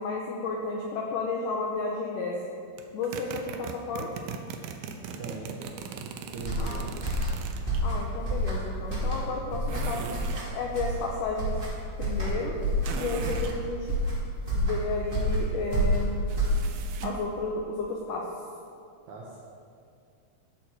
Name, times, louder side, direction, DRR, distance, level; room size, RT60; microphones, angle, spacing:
voice 1, 0.0-2.4 2.9-4.1 6.6-6.9 7.8-10.2 10.5-11.6 12.0-12.5 12.9-14.0 14.5-16.1 17.0-18.3, left 3 dB, 75° left, -1 dB, 1.9 m, -32 dB
sound 1, 2.8-7.8 9.7-10.5 12.8-13.6 16.3-17.3, right 7 dB, 90° right, 2.0 m, -39 dB
voice 2, 5.2-7.1 19.1-19.4, right 3 dB, 65° right, -4 dB, 1.9 m, -41 dB
sound 2, 6.4-17.0, equal, 20° right, 1.5 m, -29 dB
14.5 x 6.4 x 4.7 m, 2.3 s
omnidirectional pair, 4.7 m